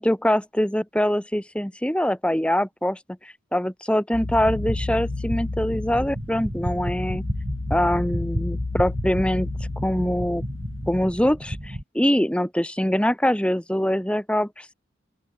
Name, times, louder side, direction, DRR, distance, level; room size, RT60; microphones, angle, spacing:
voice 1, 0.0-7.2 7.7-9.5 9.8-10.4 10.9-14.7, equal, 5° left, 1.8 m, -23 dB
sound 1, 4.1-11.0, left 3 dB, 80° left, 0.8 m, -32 dB
sound 2, 4.2-11.8, equal, 30° right, 5.2 m, -32 dB
open air
head